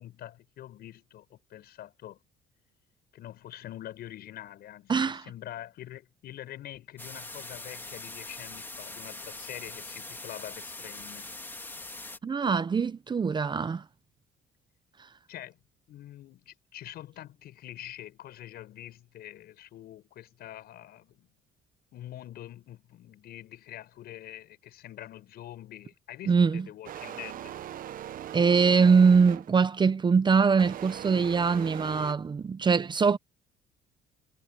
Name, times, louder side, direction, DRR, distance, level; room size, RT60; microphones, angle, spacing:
voice 1, 0.0-2.2 3.1-11.3 15.3-15.6 15.9-21.3 21.9-27.6, left 13 dB, 70° left, 6.9 m, -45 dB
voice 2, 4.9-5.2 12.2-13.8 26.3-26.7 28.3-33.2, right 5 dB, 25° right, 0.8 m, -23 dB
sound 1, 7.0-12.2, left 2 dB, 10° left, 1.7 m, -42 dB
sound 2, 26.8-29.7 30.6-32.1, right 11 dB, 55° right, 1.0 m, -40 dB
cardioid pair, 110°, 17 cm